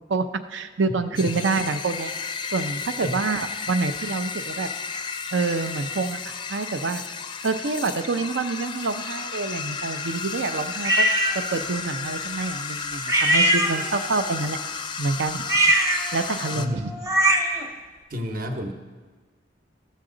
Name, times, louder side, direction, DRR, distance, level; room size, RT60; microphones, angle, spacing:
voice 1, 0.5-2.1 2.5-4.7 5.3-7.0 7.4-11.1 11.3-14.6 15.0-15.4 15.9-16.8, right 3 dB, 80° right, 10 dB, 0.6 m, -27 dB
sound 1, 1.2-16.7, left 5 dB, 25° left, 0.4 m, -33 dB
sound 2, 10.8-11.4 13.1-14.2 15.4-17.7, right 1 dB, 15° right, 0.8 m, -21 dB
voice 2, 16.5-17.0 18.1-18.7, left 1 dB, 50° right, 5 dB, 0.9 m, -30 dB
13.5 x 7.4 x 3.9 m, 1.4 s
head